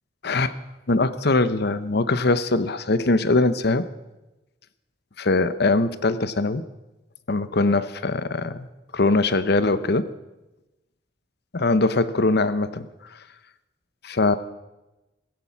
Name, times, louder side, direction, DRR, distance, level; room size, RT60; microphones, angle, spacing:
voice 1, 0.2-0.5 0.9-3.8 5.2-6.6 7.3-8.7 8.9-10.1 11.5-12.9 14.0-14.4, left 3 dB, 60° left, 13 dB, 0.9 m, -21 dB
16.0 x 15.5 x 5.9 m, 1.0 s
head